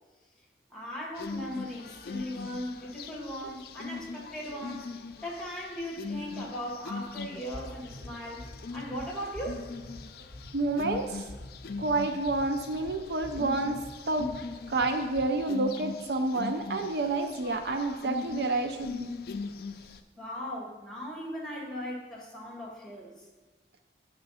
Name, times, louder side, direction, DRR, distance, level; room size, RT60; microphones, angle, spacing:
voice 1, 0.7-5.0 5.2-9.7 19.7-23.2, equal, 5° left, -2 dB, 1.6 m, -38 dB
sound 1, 1.2-20.0, left 4 dB, 55° left, 0.4 m, -41 dB
sound 2, 7.5-15.2, left 1 dB, 80° right, 2.5 m, -47 dB
voice 2, 10.5-11.3 11.8-13.8 14.1-14.3 14.7-19.1, right 2 dB, 60° right, 6 dB, 0.5 m, -29 dB
8.8 x 3.7 x 5.5 m, 1.2 s
head